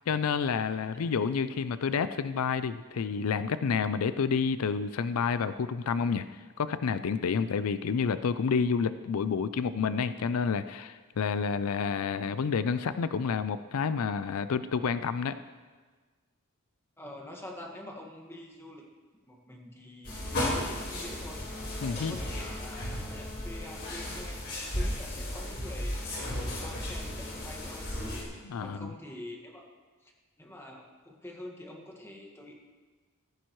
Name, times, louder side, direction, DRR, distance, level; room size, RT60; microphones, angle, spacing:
voice 1, 0.1-6.2 6.6-15.4 21.8-22.1 28.4-28.9, left 6 dB, 80° left, 13 dB, 0.4 m, -29 dB
voice 2, 17.0-18.8 19.2-20.2 20.5-21.4 21.9-24.4 24.7-26.0 26.6-27.9 28.6-29.6 30.0-30.1 30.4-32.5, left 1 dB, 10° left, 0 dB, 1.7 m, -45 dB
sound 1, 20.0-28.2, left 1 dB, 55° left, 4.4 m, -35 dB
15.0 x 14.5 x 3.1 m, 1.4 s
head